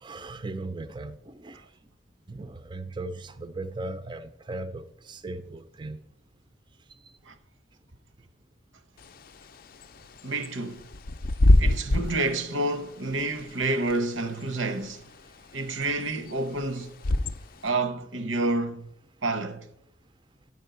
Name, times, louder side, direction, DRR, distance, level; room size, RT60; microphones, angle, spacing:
voice 1, 0.0-1.6 2.3-6.0 11.9-12.0, right 2 dB, 25° right, 0.4 m, -37 dB
Bird / Wind, 9.0-17.7, left 1 dB, 45° left, 0.4 m, -27 dB
voice 2, 10.2-10.9 11.6-15.0 15.5-16.9 17.6-18.9 19.2-19.7, right 2 dB, 85° right, 1.0 m, -29 dB
9.5 x 5.4 x 8.0 m
head